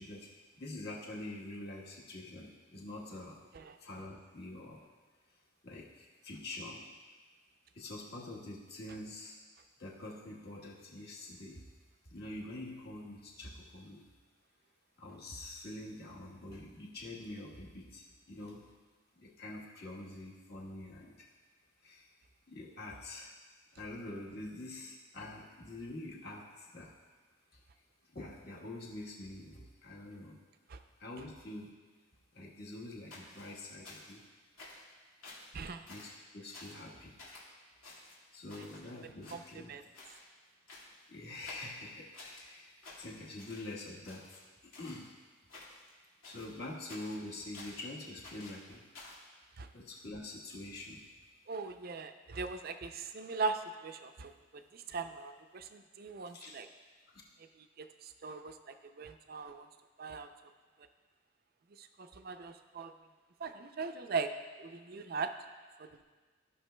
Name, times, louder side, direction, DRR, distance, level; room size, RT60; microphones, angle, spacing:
voice 1, 0.0-3.4 3.8-4.9 5.6-6.8 7.7-9.4 9.8-11.6 12.1-14.0 15.0-18.6 19.2-21.3 21.8-22.1 22.5-23.4 23.7-27.0 28.1-30.4 31.0-31.7 32.3-34.2 35.9-37.2 38.3-39.7 41.1-44.3 44.6-45.1 46.2-48.9 49.7-51.0 56.3-56.6, left 2 dB, 50° left, -3 dB, 1.3 m, -46 dB
sound 1, 33.1-34.2 34.6-34.9 35.2-35.5 35.9-36.2 36.5-36.9 37.2-37.5 37.8-38.9 39.2-39.7 39.9-40.3 40.7-41.1 41.5-42.4 42.8-43.8 44.0-45.1 45.5-45.9 46.2-47.9 48.2-49.3, left 2 dB, 80° left, 2.1 m, -52 dB
voice 2, 51.5-56.7 57.8-59.7 60.0-60.3 61.8-62.9 63.4-64.3 64.6-65.3 65.8-66.0, right 4 dB, 45° right, 8 dB, 0.4 m, -40 dB
15.0 x 5.6 x 2.2 m, 1.4 s
head